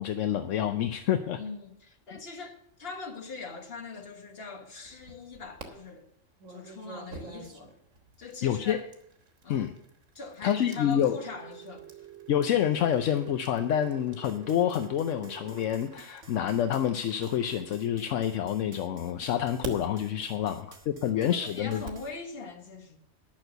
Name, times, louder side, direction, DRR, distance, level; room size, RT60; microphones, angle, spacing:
voice 1, 0.0-1.4 8.4-8.8 9.5-9.7 10.4-11.2 12.3-21.8, left 10 dB, 75° left, 1.0 m, -28 dB
voice 2, 1.3-6.1 6.5-7.7 8.2-8.9 9.4-9.8 10.1-11.8 20.4-20.6 21.0-23.0, left 4 dB, 50° left, 1.6 m, -42 dB
sound 1, 4.8-5.7 6.4-18.4 19.1-22.1, right 3 dB, 90° right, 1.8 m, -48 dB
Telephone, 10.7-15.7, right 13 dB, 50° right, 0.9 m, -48 dB
sound 2, 14.2-22.1, right 4 dB, 75° right, 1.6 m, -53 dB
10.5 x 6.2 x 7.9 m
omnidirectional pair, 1.3 m